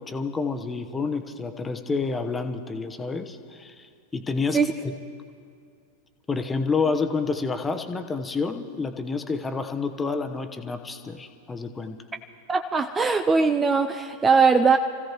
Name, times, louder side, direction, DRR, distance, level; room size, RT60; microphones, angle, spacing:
voice 1, 0.0-4.9 6.3-12.0, left 4 dB, 15° left, 7 dB, 0.9 m, -29 dB
voice 2, 12.5-14.8, right 5 dB, 15° right, 7 dB, 0.5 m, -20 dB
28.5 x 15.5 x 3.0 m, 2.3 s
figure-of-eight pair, 90°, 0 cm